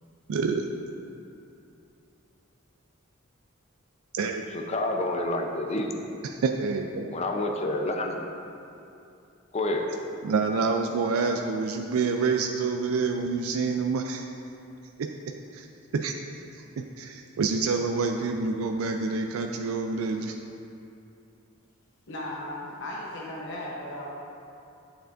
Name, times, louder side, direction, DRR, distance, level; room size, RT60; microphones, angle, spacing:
voice 1, 0.3-0.7 4.1-4.4 6.2-7.1 10.2-14.2 15.0-15.1 15.5-15.7 15.9-16.2 16.5-20.3, right 4 dB, 80° right, 4 dB, 0.4 m, -27 dB
voice 2, 4.5-5.9 7.1-8.2 9.5-9.9, left 2 dB, 30° left, 3 dB, 0.6 m, -28 dB
voice 3, 22.1-24.1, left 1 dB, 60° left, -4 dB, 0.9 m, -36 dB
10.5 x 6.6 x 2.5 m, 2.7 s
head